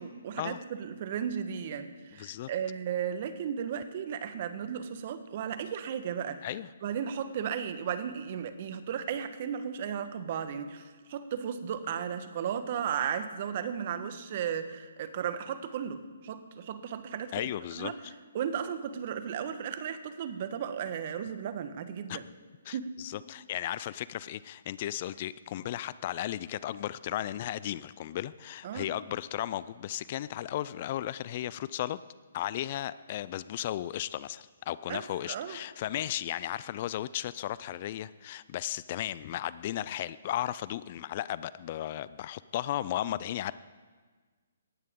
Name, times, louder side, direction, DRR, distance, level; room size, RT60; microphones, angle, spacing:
voice 1, 0.0-6.5 6.8-17.5 17.8-18.0 18.3-22.3 22.7-22.9 28.6-28.9 34.9-35.6, right 8 dB, 45° right, 10 dB, 1.3 m, -35 dB
voice 2, 2.2-2.5 6.4-6.7 17.3-18.1 22.1-22.2 22.7-32.0 32.3-43.5, left 12 dB, 40° left, 17 dB, 0.4 m, -35 dB
18.5 x 14.0 x 3.8 m, 1.4 s
figure-of-eight pair, 140°, 0 cm